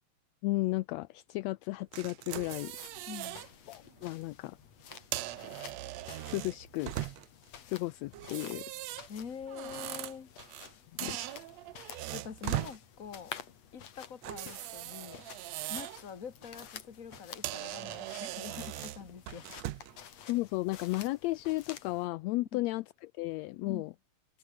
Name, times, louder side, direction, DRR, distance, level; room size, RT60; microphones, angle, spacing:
voice 1, 0.4-2.7 3.7-4.6 6.3-6.9 7.6-8.6 11.0-11.2 20.3-23.9, left 19 dB, 80° left, 1.6 m, -34 dB
sound 1, 1.9-3.5 3.9-4.1 4.9-7.4 8.1-10.7 11.0-12.8 14.2-16.0 16.4-16.7 17.1-17.2 17.4-20.0, right 15 dB, 70° right, 1.9 m, -40 dB
sound 2, 2.3-22.1, left 8 dB, 60° left, 3.1 m, -51 dB
voice 2, 3.1-3.4 9.1-10.3 12.1-13.3 13.7-15.2 15.7-19.5 22.5-22.6 23.6-23.9, left 6 dB, 35° left, 1.4 m, -45 dB
open air
omnidirectional pair, 3.5 m